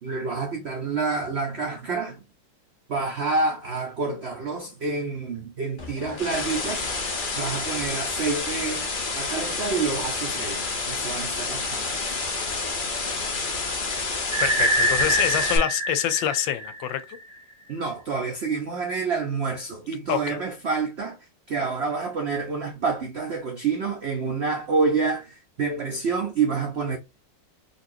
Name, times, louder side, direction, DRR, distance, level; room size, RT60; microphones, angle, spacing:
voice 1, 0.0-2.2 2.9-6.8 7.4-10.6 10.9-12.2 17.7-21.2 21.5-27.0, right 4 dB, 85° right, 0.5 m, -28 dB
sound 1, 5.8-15.6, left 4 dB, 45° left, 0.6 m, -29 dB
sound 2, 14.3-17.2, right 1 dB, 30° right, 0.8 m, -25 dB
voice 2, 14.4-17.0 20.1-20.4, left 11 dB, 85° left, 1.3 m, -26 dB
4.1 x 2.7 x 2.6 m
omnidirectional pair, 2.0 m